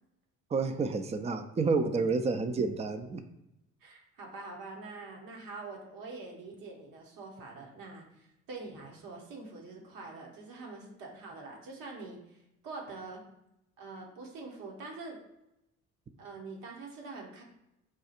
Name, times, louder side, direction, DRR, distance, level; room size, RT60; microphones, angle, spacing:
voice 1, 0.5-3.2, right 4 dB, 20° right, 9 dB, 0.5 m, -29 dB
voice 2, 3.8-13.2 13.8-15.2 16.2-17.4, right 3 dB, 65° right, 0 dB, 1.4 m, -45 dB
4.8 x 2.4 x 4.3 m, 0.86 s
hypercardioid pair, 55°, 37 cm